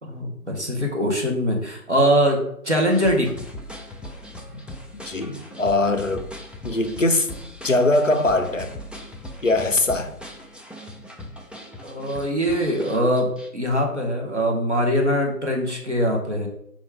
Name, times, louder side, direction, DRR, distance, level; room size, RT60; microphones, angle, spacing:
voice 1, 0.0-3.3 11.8-16.5, equal, 50° right, 0.8 m, -22 dB
sound 1, 2.8-13.5, left 1 dB, 5° right, 0.4 m, -39 dB
voice 2, 5.1-6.3 6.6-7.3 7.6-8.7 9.4-10.1, left 2 dB, 60° left, 0.5 m, -21 dB
4.3 x 2.4 x 4.4 m
figure-of-eight pair, 180°, 45 cm